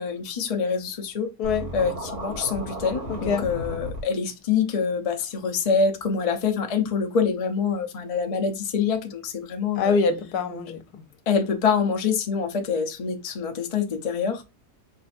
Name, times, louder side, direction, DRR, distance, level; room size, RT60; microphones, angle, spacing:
voice 1, 0.0-1.3 1.7-10.0 11.3-14.4, left 6 dB, 40° left, 0.5 m, -25 dB
Scratching (performance technique), 1.4-4.0, right 1 dB, 50° right, 2.1 m, -34 dB
voice 2, 3.1-3.5 9.8-11.0, left 5 dB, 75° left, 1.3 m, -25 dB
4.9 x 2.6 x 4.2 m
omnidirectional pair, 1.7 m